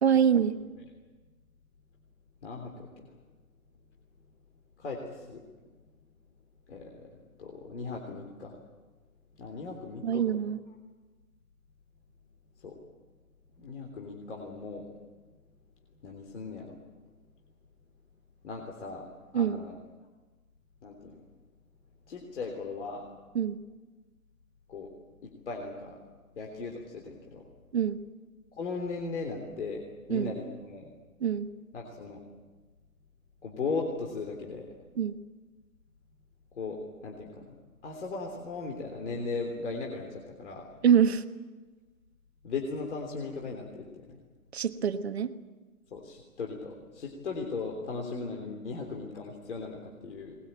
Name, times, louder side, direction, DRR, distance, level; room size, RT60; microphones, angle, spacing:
voice 1, 0.0-0.6 10.0-10.6 19.3-19.6 23.3-23.6 27.7-28.0 30.1-30.3 31.2-31.5 35.0-35.1 40.8-41.2 44.5-45.3, right 8 dB, 45° right, 9 dB, 1.3 m, -25 dB
voice 2, 2.4-3.2 4.8-5.4 6.7-8.6 9.4-10.2 12.6-12.8 13.5-14.9 16.0-16.8 18.4-19.8 20.8-21.2 22.1-23.1 24.7-24.9 25.2-26.0 26.4-27.5 28.5-30.9 31.7-32.2 33.4-34.7 36.5-37.4 37.8-40.7 42.4-44.1 45.9-50.4, left 4 dB, 50° left, 1 dB, 3.5 m, -38 dB
22.5 x 20.5 x 9.0 m, 1.3 s
hypercardioid pair, 175°, 44 cm